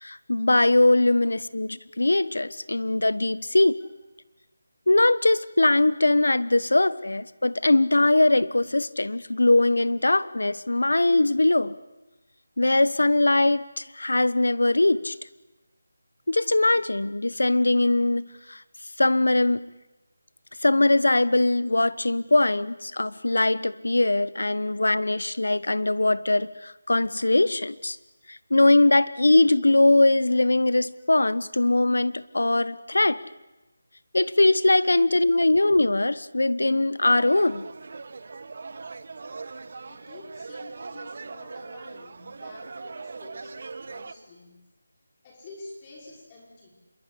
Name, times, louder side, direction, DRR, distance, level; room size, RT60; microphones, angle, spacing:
voice 1, 0.0-3.8 4.9-11.7 12.6-15.1 16.3-18.6 19.0-19.7 20.6-28.0 28.3-33.2 34.1-37.6, left 2 dB, 85° left, 17 dB, 1.1 m, -21 dB
sound 1, 37.0-44.1, right 4 dB, 50° right, 1.2 m, -40 dB
voice 2, 39.8-43.6 43.9-44.7 45.2-46.7, left 2 dB, 20° left, -2 dB, 5.1 m, -47 dB
27.0 x 22.5 x 8.6 m, 1.1 s
figure-of-eight pair, 165°, 0 cm